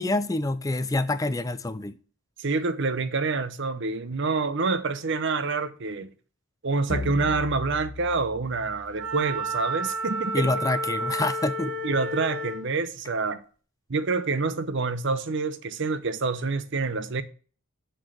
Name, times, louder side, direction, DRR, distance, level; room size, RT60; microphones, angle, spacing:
voice 1, 0.0-1.9 10.3-11.7, left 2 dB, 15° left, 0.4 m, -27 dB
voice 2, 2.4-6.1 6.6-10.5 11.8-13.4 13.9-17.2, right 4 dB, 55° right, 0.7 m, -27 dB
sound 1, 6.9-9.5, left 2 dB, 70° left, 1.2 m, -37 dB
Wind instrument woodwind instrument, 9.0-12.7, right 1 dB, 70° right, 1.2 m, -31 dB
7.5 x 4.5 x 6.4 m
head